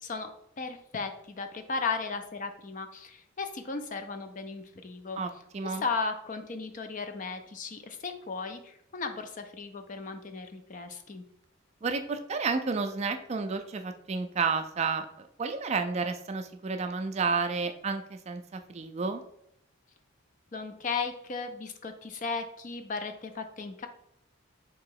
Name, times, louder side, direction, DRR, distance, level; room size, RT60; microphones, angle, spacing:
voice 1, 0.6-5.2 5.6-11.2 20.5-23.9, left 4 dB, 40° left, 7 dB, 0.4 m, -36 dB
voice 2, 5.1-5.8 11.8-19.2, right 4 dB, 30° right, 7 dB, 0.4 m, -31 dB
3.6 x 3.0 x 4.6 m, 0.76 s
head